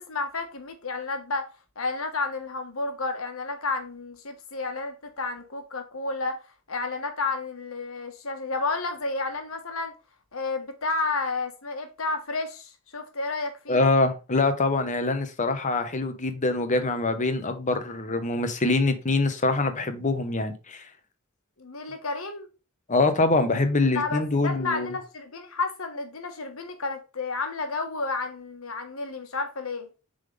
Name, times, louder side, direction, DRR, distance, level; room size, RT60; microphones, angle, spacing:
voice 1, 0.0-1.5 1.7-6.4 6.7-9.9 10.3-13.8 21.6-22.5 23.9-29.9, left 3 dB, 85° left, 1.4 m, -31 dB
voice 2, 13.7-20.9 22.9-24.9, left 3 dB, 35° left, 1.0 m, -24 dB
7.3 x 3.9 x 3.3 m
head